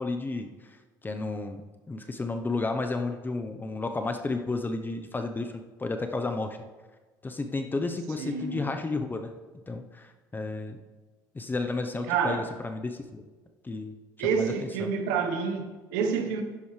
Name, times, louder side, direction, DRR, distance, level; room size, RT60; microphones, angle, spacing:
voice 1, 0.0-6.7 7.2-9.3 9.7-10.8 11.3-13.3 13.6-14.9, left 3 dB, 20° left, 0.9 m, -32 dB
voice 2, 8.2-8.6 12.1-12.4 14.2-16.4, right 6 dB, 85° right, 1.2 m, -28 dB
10.5 x 10.5 x 3.3 m
supercardioid pair, 80°, 9 cm